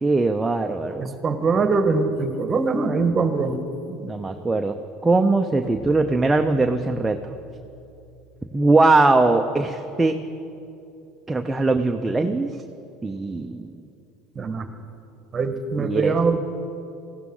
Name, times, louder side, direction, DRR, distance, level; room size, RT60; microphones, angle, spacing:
voice 1, 0.0-1.1 3.9-7.2 8.5-10.2 11.3-12.5 13.0-13.7 15.8-16.1, right 3 dB, 15° right, 5 dB, 0.8 m, -21 dB
voice 2, 1.0-3.6 14.3-14.7 15.3-16.4, right 4 dB, 30° right, 8 dB, 1.4 m, -22 dB
sound 1, 5.6-10.9, right 2 dB, 35° left, 3.9 m, -49 dB
18.0 x 15.5 x 3.9 m, 2.7 s
hypercardioid pair, 85°, 0 cm